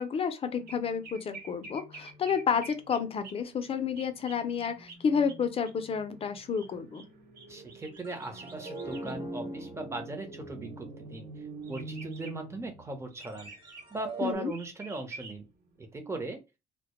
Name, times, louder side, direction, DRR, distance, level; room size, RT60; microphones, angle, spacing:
voice 1, 0.0-7.0 14.2-14.5, left 6 dB, 35° left, 0.5 m, -30 dB
sound 1, 0.5-16.0, right 3 dB, 65° right, 0.8 m, -50 dB
voice 2, 7.5-11.3 11.7-13.5 13.9-15.5 15.8-16.4, right 2 dB, 15° right, 0.6 m, -38 dB
sound 2, 8.0-12.2 13.2-14.3, right 2 dB, 30° right, 1.1 m, -43 dB
sound 3, 8.3-13.3, right 3 dB, 85° right, 0.5 m, -46 dB
2.1 x 2.0 x 2.8 m
cardioid pair, 110°, 17 cm